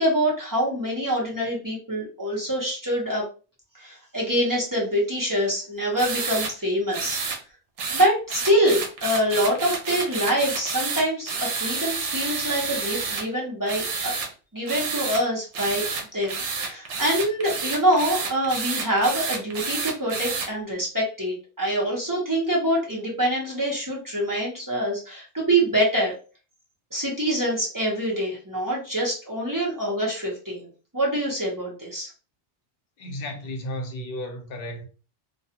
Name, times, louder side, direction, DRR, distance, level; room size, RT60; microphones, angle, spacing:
voice 1, 0.0-3.2 3.8-7.2 7.9-14.1 14.5-15.8 16.1-16.4 16.6-26.1 26.9-30.7 30.9-32.1, equal, 20° right, 0.7 m, -25 dB
sound 1, 6.0-6.5 6.9-7.4 7.8-13.2 13.7-14.3 14.7-15.2 15.5-20.5, right 5 dB, 85° right, 0.9 m, -29 dB
voice 2, 33.0-34.8, left 1 dB, 60° left, 0.8 m, -33 dB
2.3 x 2.2 x 2.8 m
omnidirectional pair, 1.2 m